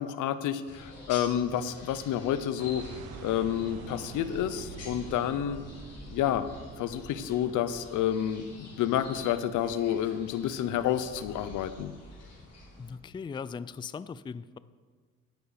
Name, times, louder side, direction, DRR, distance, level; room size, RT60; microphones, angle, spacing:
voice 1, 0.0-2.9 3.2-5.6 6.1-6.5 6.8-11.9, left 10 dB, 85° left, 13 dB, 0.7 m, -29 dB
sound 1, 0.7-12.9, left 2 dB, 55° left, 3.9 m, -48 dB
sound 2, 2.6-7.7, right 5 dB, 85° right, 1.2 m, -45 dB
voice 2, 12.8-14.6, left 6 dB, 15° left, 16 dB, 0.3 m, -39 dB
10.5 x 10.5 x 5.0 m, 1.5 s
cardioid pair, 90°, 30 cm